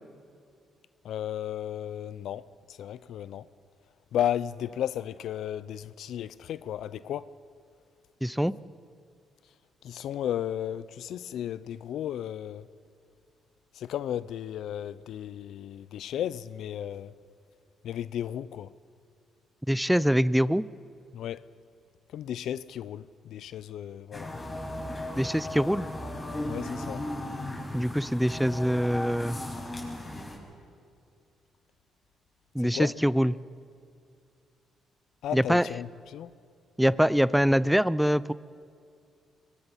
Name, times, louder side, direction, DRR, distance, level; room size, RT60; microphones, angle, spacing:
voice 1, 1.0-3.5 4.1-7.3 9.8-12.7 13.7-17.1 17.8-18.7 21.1-21.5 22.1-24.3 26.4-27.1 32.6-32.9 35.2-36.3, left 10 dB, 75° left, 0.6 m, -34 dB
voice 2, 8.2-8.5 19.7-20.6 25.2-25.9 27.7-29.4 32.5-33.3 35.3-35.7 36.8-38.3, equal, ahead, 0.5 m, -24 dB
sound 1, 24.1-30.4, left 1 dB, 25° left, 6.8 m, -36 dB
24.0 x 22.5 x 5.7 m
cardioid pair, 90°, 0 cm